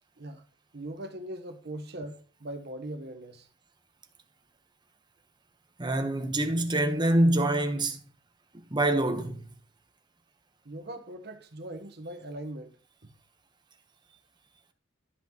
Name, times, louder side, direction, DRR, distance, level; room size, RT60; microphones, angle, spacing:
voice 1, 0.7-3.5 10.6-12.8 13.0-13.1, right 1 dB, 55° right, 1.1 m, -40 dB
voice 2, 5.8-8.0 8.7-9.4, right 1 dB, 25° right, 1.0 m, -25 dB
12.5 x 5.9 x 3.0 m
head